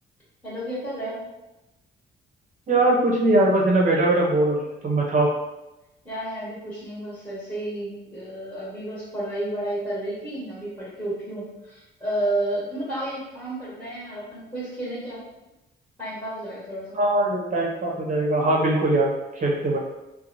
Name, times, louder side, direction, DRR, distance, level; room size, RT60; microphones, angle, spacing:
voice 1, 0.4-1.2 6.0-15.2 16.0-17.0, right 1 dB, 10° left, -10 dB, 1.4 m, -31 dB
voice 2, 2.7-5.3 16.9-19.8, right 2 dB, 40° right, -3 dB, 0.8 m, -21 dB
2.9 x 2.3 x 2.6 m, 0.98 s
cardioid pair, 90°, 20 cm